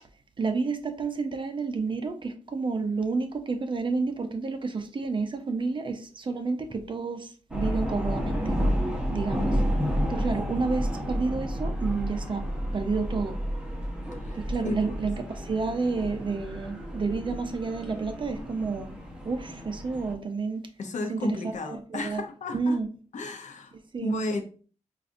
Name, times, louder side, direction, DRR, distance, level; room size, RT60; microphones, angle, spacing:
voice 1, 0.4-8.7 9.1-9.5 10.1-12.4 12.7-13.4 14.3-18.9 19.2-20.6 21.1-22.2 22.5-22.9 23.9-24.2, right 4 dB, 40° right, 0.5 m, -30 dB
sound 1, 7.5-20.1, equal, 5° right, 0.8 m, -31 dB
voice 2, 14.6-15.0 20.8-22.8 23.1-23.7 24.0-24.4, left 2 dB, 75° left, 0.6 m, -33 dB
4.6 x 2.4 x 2.5 m
wide cardioid pair, 115°, 13 cm